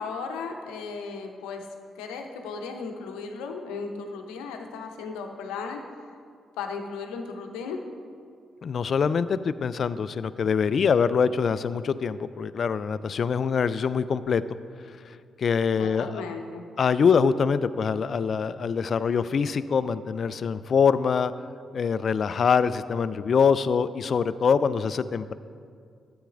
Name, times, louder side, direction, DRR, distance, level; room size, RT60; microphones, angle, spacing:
voice 1, 0.0-1.7 2.0-5.8 6.6-7.8 15.8-16.6, left 5 dB, 85° left, 4 dB, 0.7 m, -35 dB
voice 2, 8.6-14.4 15.4-16.2 16.8-21.3 21.7-25.3, left 6 dB, 60° left, 15 dB, 0.3 m, -24 dB
13.0 x 8.7 x 2.5 m, 2.2 s
hypercardioid pair, 45°, 0 cm